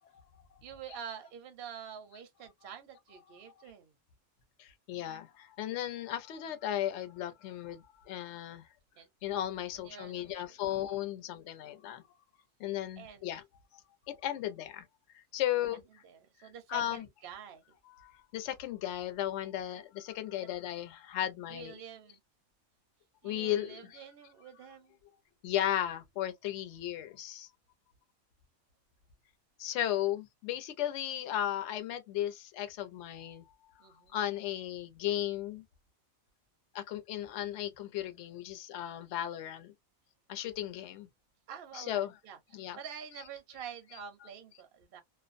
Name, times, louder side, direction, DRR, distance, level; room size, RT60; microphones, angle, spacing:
voice 1, 0.6-3.9 9.0-9.1 9.7-10.7 13.0-13.3 16.0-17.8 21.5-22.2 23.2-25.0 33.8-34.2 41.5-45.0, right 8 dB, 60° right, 0.6 m, -47 dB
voice 2, 4.6-8.6 9.2-12.0 12.6-13.4 14.1-14.8 15.3-15.8 16.7-17.0 18.0-21.7 23.2-24.0 25.4-27.5 29.6-33.4 34.1-35.6 36.7-39.7 40.3-41.1 41.7-42.1 42.5-42.8, left 12 dB, 65° left, 0.8 m, -35 dB
2.5 x 2.1 x 2.4 m
omnidirectional pair, 1.5 m